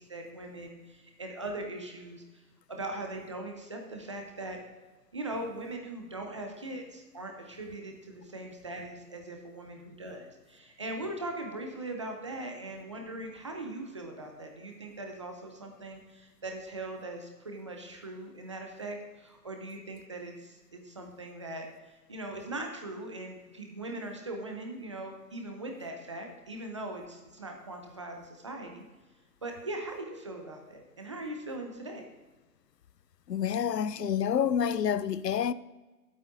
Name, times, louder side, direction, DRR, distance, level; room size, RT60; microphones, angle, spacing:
voice 1, 0.0-2.4 2.7-4.6 5.1-28.8 29.4-32.0, right 2 dB, 20° right, 0.7 m, -40 dB
voice 2, 33.3-35.5, left 8 dB, 90° left, 0.6 m, -28 dB
19.5 x 8.5 x 2.6 m
hypercardioid pair, 155°, 47 cm